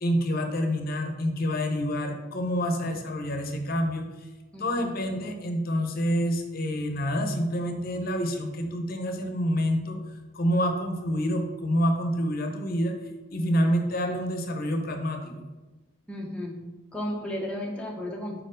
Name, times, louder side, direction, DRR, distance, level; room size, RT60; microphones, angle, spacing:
voice 1, 0.0-4.3 4.6-10.0 10.3-13.0 13.3-15.5, equal, 45° left, 4 dB, 0.6 m, -27 dB
voice 2, 4.5-4.9 16.1-16.6 16.9-18.4, left 1 dB, 5° left, -1 dB, 0.5 m, -34 dB
4.4 x 4.4 x 5.0 m, 1.2 s
head